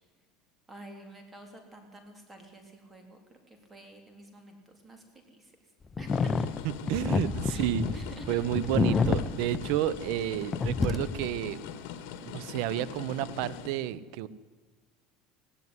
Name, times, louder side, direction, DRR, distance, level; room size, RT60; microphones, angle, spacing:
voice 1, 0.7-5.7 6.0-6.5 7.4-8.4 8.9-9.1, right 1 dB, 15° right, 5 dB, 3.5 m, -50 dB
sound 1, 6.0-10.3 10.5-11.3, left 4 dB, 20° left, 0.8 m, -29 dB
sound 2, 6.1-13.7, left 8 dB, 65° left, 2.1 m, -42 dB
voice 2, 6.9-7.9 8.3-11.6 12.2-14.3, right 12 dB, 70° right, 19 dB, 0.9 m, -31 dB
17.5 x 17.5 x 9.7 m, 1.4 s
cardioid pair, 140°, 0 cm